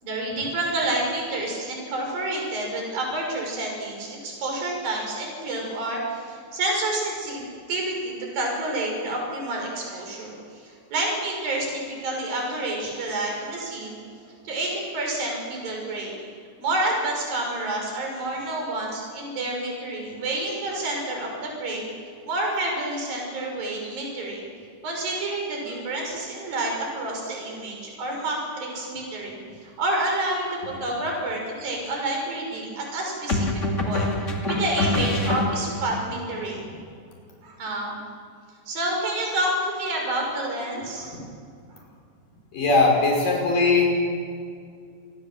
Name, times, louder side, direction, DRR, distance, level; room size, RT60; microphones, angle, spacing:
voice 1, 0.0-14.0 14.4-16.1 16.6-21.9 22.3-24.4 24.8-36.7 37.4-38.0 38.7-41.2 41.7-41.8, right 1 dB, 50° right, 0 dB, 7.7 m, -29 dB
sound 1, 30.6-30.9 33.3-36.0, left 2 dB, 25° left, 1.9 m, -25 dB
voice 2, 42.5-43.9, left 3 dB, 50° left, 0 dB, 6.7 m, -19 dB
28.0 x 20.5 x 7.7 m, 2.3 s
omnidirectional pair, 5.2 m